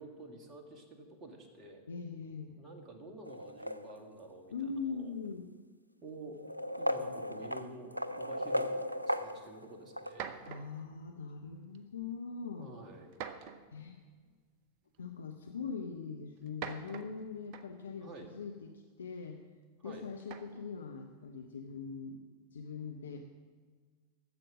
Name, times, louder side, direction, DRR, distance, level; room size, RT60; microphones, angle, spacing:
voice 1, 0.0-1.8 2.6-5.2 6.0-6.4 6.8-10.5 12.6-13.1 18.0-18.3 19.8-20.1, right 2 dB, 25° right, 3 dB, 1.9 m, -50 dB
voice 2, 1.9-2.6 4.5-5.5 10.4-12.7 13.7-14.0 15.0-19.4 19.8-22.2 22.5-23.3, left 5 dB, 70° left, 4 dB, 0.7 m, -42 dB
sound 1, 3.2-4.3 5.2-5.3 6.3-10.2, equal, 90° right, 0.4 m, -36 dB
sound 2, 9.5-9.6 10.0-10.9 11.7-12.1 13.1-13.8 14.9-15.0 16.4-17.9 20.2-20.7, right 7 dB, 45° right, 0.7 m, -45 dB
14.5 x 7.7 x 6.1 m, 1.5 s
figure-of-eight pair, 90°, 0 cm